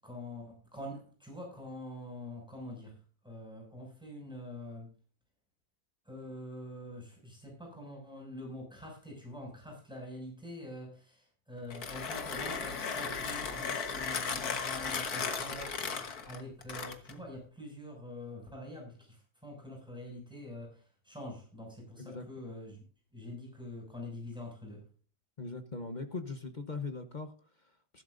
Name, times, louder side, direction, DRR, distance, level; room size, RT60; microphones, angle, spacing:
voice 1, 0.0-3.0 3.2-4.9 6.0-22.8 23.1-24.8, left 1 dB, ahead, -1 dB, 6.4 m, -45 dB
Mechanisms, 11.6-17.2, left 5 dB, 55° left, 1.8 m, -36 dB
voice 2, 25.4-28.0, left 3 dB, 35° left, 6 dB, 0.8 m, -41 dB
15.0 x 12.5 x 2.6 m, 0.40 s
omnidirectional pair, 2.1 m